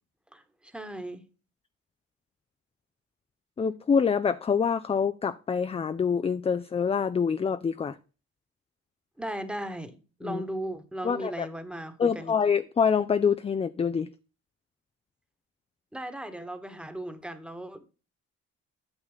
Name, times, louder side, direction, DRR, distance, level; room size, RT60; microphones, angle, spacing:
voice 1, 0.3-1.2 9.2-12.3 15.9-17.9, right 1 dB, 5° right, 1.2 m, -37 dB
voice 2, 3.6-8.0 10.2-10.4 11.0-11.5 12.0-14.1, left 6 dB, 20° left, 0.4 m, -26 dB
8.9 x 6.7 x 4.0 m
cardioid pair, 90°, 30 cm